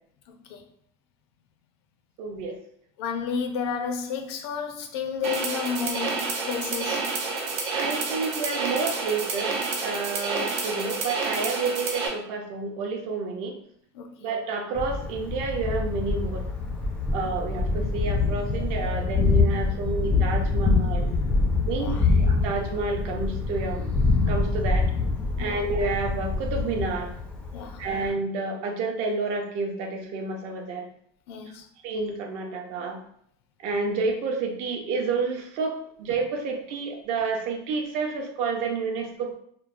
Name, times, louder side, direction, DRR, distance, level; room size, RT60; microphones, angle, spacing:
voice 1, 0.3-0.6 2.5-2.6 3.0-7.1 13.9-14.3 21.8-22.0 25.4-25.6 27.5-27.8 31.3-31.7, left 6 dB, 75° left, 5 dB, 0.4 m, -32 dB
voice 2, 2.2-2.6 7.7-9.5 9.8-13.6 14.2-16.5 17.1-21.1 21.7-21.9 22.2-24.0 24.3-24.9 25.4-27.1 27.8-30.9 31.8-33.0 33.6-39.4, right 4 dB, 50° right, 3 dB, 0.5 m, -29 dB
sound 1, 5.2-12.1, right 4 dB, 90° right, 0.7 m, -29 dB
Thunder, 14.7-28.1, left 3 dB, 10° left, 0.3 m, -25 dB
3.0 x 2.0 x 2.4 m, 0.66 s
cardioid pair, 160°, 14 cm